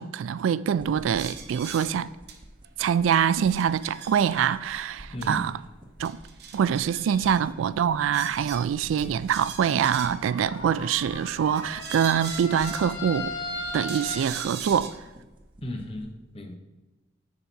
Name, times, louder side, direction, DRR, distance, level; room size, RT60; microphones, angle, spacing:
voice 1, 0.0-2.1 2.8-5.5 6.0-6.2 6.5-13.3 13.7-14.9, right 8 dB, 85° right, 0.3 m, -24 dB
sound 1, 0.7-16.1, right 1 dB, 25° right, 0.8 m, -50 dB
sound 2, 1.1-1.9 2.3-2.4 2.6-2.7 3.1-4.5 5.2-5.3 5.6-5.7 6.0-7.4 8.1-10.3 11.1-12.9 13.9-14.9, right 7 dB, 55° right, 0.8 m, -41 dB
voice 2, 5.1-5.5 15.6-16.6, left 1 dB, 30° left, 0.7 m, -36 dB
sound 3, 6.9-14.2, left 2 dB, 80° left, 1.4 m, -39 dB
10.0 x 4.2 x 4.5 m
head